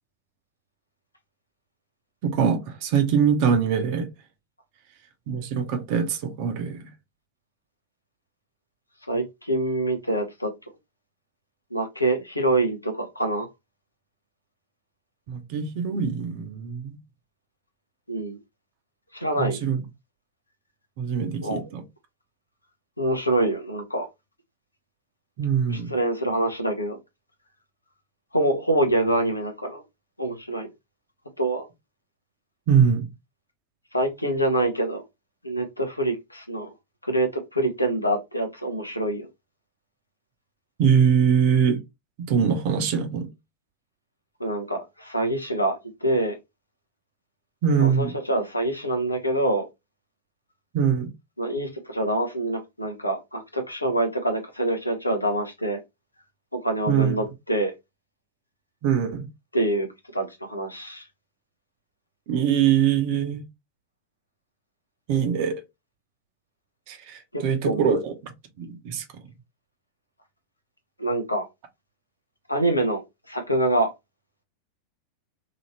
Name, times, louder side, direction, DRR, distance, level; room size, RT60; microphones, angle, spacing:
voice 1, 2.2-4.1 5.3-6.9 15.3-17.0 19.3-19.8 21.0-21.8 25.4-25.9 32.7-33.1 40.8-41.8 42.3-43.3 47.6-48.1 50.7-51.1 56.9-57.1 58.8-59.3 62.3-63.4 65.1-65.6 66.9-68.3 68.6-69.0, right 7 dB, 45° right, 0.8 m, -23 dB
voice 2, 9.1-10.5 11.7-13.5 18.1-18.4 19.1-19.6 21.4-21.6 23.0-24.1 25.7-27.0 28.3-29.8 30.2-30.7 31.4-31.7 33.9-35.0 35.4-36.7 37.1-39.3 44.4-46.4 47.8-49.6 51.4-55.8 56.5-57.7 59.5-59.9 60.1-61.0 67.3-68.0 71.0-71.4 72.5-73.0 73.3-73.9, right 1 dB, 85° left, 0.8 m, -25 dB
2.9 x 2.7 x 2.9 m
figure-of-eight pair, 90°, 0 cm